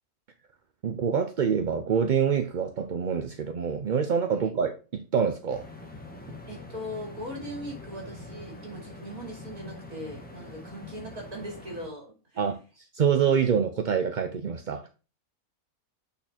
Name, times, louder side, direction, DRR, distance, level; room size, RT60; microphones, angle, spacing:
voice 1, 0.8-5.7 12.4-14.9, right 7 dB, 50° right, 0.5 m, -26 dB
sound 1, 5.5-11.9, left 1 dB, 5° left, 1.3 m, -44 dB
voice 2, 6.5-12.4, equal, 75° right, 3.3 m, -39 dB
8.5 x 4.2 x 4.3 m
omnidirectional pair, 1.5 m